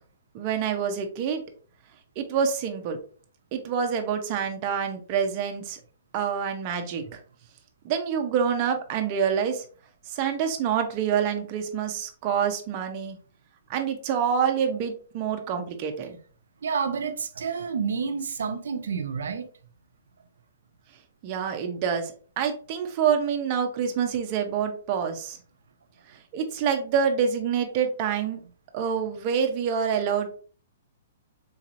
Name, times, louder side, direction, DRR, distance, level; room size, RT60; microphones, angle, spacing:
voice 1, 0.3-1.4 2.2-3.0 3.5-5.8 6.1-7.2 7.8-9.6 10.1-13.2 13.7-16.2 21.2-25.4 26.3-28.4 28.7-30.4, right 7 dB, 30° right, 0.6 m, -27 dB
voice 2, 16.6-19.5, right 6 dB, 80° right, 0.6 m, -29 dB
3.9 x 2.9 x 2.5 m
hypercardioid pair, 170°, 0 cm